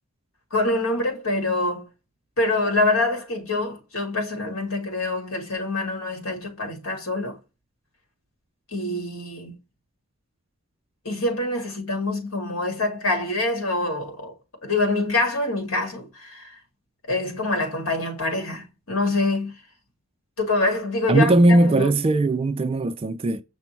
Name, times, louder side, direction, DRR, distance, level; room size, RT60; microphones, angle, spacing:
voice 1, 0.5-1.9 2.4-7.4 8.7-9.5 11.0-14.3 14.6-16.6 17.1-19.5 20.4-21.9, left 2 dB, 70° left, 2.0 m, -25 dB
voice 2, 21.1-23.4, right 2 dB, 25° right, 0.3 m, -19 dB
6.0 x 2.0 x 4.4 m
head